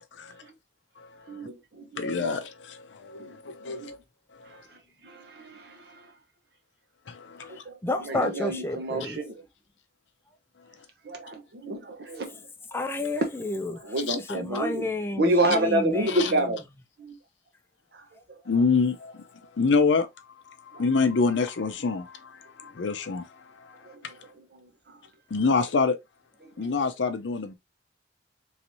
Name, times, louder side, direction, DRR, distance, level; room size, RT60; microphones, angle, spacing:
voice 1, 1.3-2.2 3.3-3.4 3.7-3.9 5.0-5.8 7.5-7.7 8.0-9.4 11.0-12.4 13.8-14.8 15.2-16.6 17.0-17.2 20.7-20.8 23.9-24.1 26.6-26.7, right 1 dB, 60° right, 0.8 m, -28 dB
voice 2, 2.0-4.0 4.4-4.6 7.1-7.6 14.1-14.2 16.1-16.3 18.5-19.2 19.6-20.1 20.7-23.3 23.6-23.7 24.0-24.1 25.3-26.0 26.6-27.5, left 4 dB, 80° left, 0.6 m, -26 dB
voice 3, 7.8-9.2 12.7-13.8 14.1-16.5, left 2 dB, 15° left, 0.4 m, -31 dB
3.1 x 2.9 x 2.7 m
head